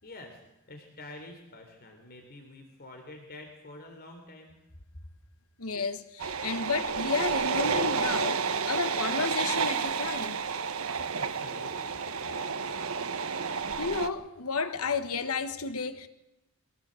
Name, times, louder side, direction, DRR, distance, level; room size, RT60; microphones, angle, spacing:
voice 1, 0.0-0.4 0.7-4.5 11.2-12.0, left 2 dB, 45° left, 3.5 m, -47 dB
voice 2, 5.6-10.4 13.8-16.1, left 4 dB, 80° left, 1.3 m, -32 dB
sound 1, 6.2-14.1, right 5 dB, 70° right, 1.2 m, -30 dB
24.5 x 17.0 x 7.7 m
head